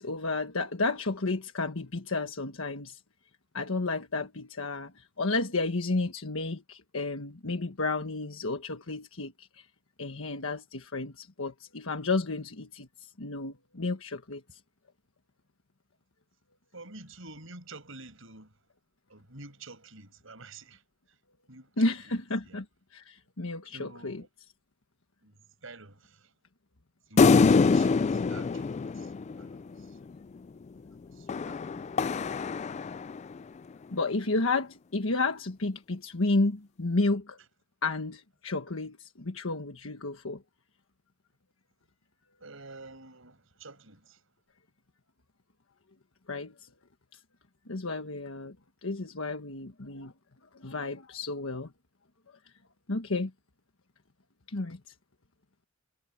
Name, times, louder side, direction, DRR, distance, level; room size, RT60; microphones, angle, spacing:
voice 1, 0.0-3.0 3.5-9.7 10.0-14.6 21.8-22.6 22.9-24.2 33.9-37.4 37.8-40.4 46.3-46.7 47.1-47.2 47.7-48.5 48.8-50.1 50.5-51.7 52.9-53.3 54.5-54.8, left 3 dB, 80° left, 1.4 m, -32 dB
voice 2, 16.7-18.5 19.1-20.8 21.5-21.9 22.4-22.6 23.7-24.3 25.2-25.4 25.6-26.3 27.1-29.1 29.4-30.0 31.0-32.5 42.4-44.2, right 3 dB, 75° right, 6.6 m, -49 dB
sound 1, 27.2-29.8 31.3-33.4, left 4 dB, 35° left, 0.3 m, -24 dB
head